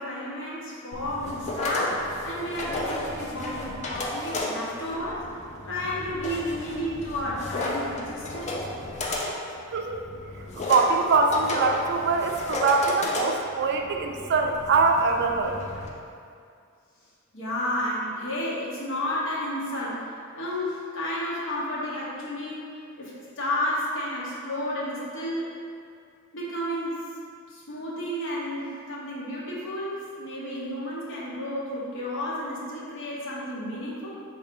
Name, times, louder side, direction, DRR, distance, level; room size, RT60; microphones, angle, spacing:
voice 1, 0.0-5.3 5.7-8.6 10.4-10.7 17.3-20.0 20.3-22.7 23.0-25.5 26.3-27.1 27.5-34.1, left 1 dB, 60° left, -6 dB, 1.1 m, -32 dB
sound 1, 0.9-15.9, left 2 dB, 30° left, 0.5 m, -33 dB
voice 2, 9.7-10.0 10.6-15.6, right 4 dB, 50° right, 4 dB, 0.4 m, -23 dB
4.6 x 3.2 x 3.7 m, 2.3 s
head